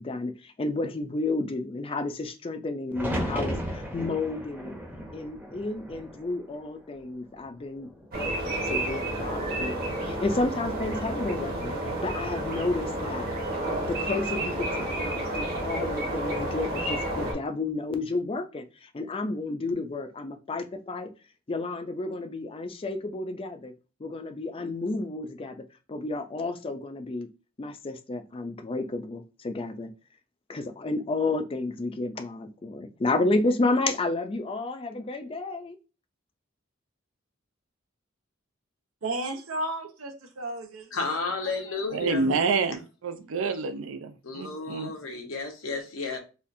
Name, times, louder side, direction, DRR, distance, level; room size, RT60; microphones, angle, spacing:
voice 1, 0.0-4.8 5.1-11.7 12.0-13.3 13.9-21.1 21.5-23.7 24.0-25.6 25.9-27.3 27.6-29.9 30.5-35.8, left 2 dB, 25° left, 0.4 m, -31 dB
sound 1, 2.9-7.0 7.3-8.1 10.0-10.5, equal, 10° right, 0.7 m, -35 dB
udale-bay, 8.1-17.3, right 1 dB, 45° right, 1.2 m, -30 dB
voice 2, 39.0-41.9, right 1 dB, 90° right, 0.8 m, -35 dB
voice 3, 40.9-42.3 44.2-46.2, left 4 dB, 80° left, 0.9 m, -32 dB
voice 4, 41.9-44.9, right 4 dB, 70° right, 0.5 m, -28 dB
4.2 x 2.4 x 2.6 m
head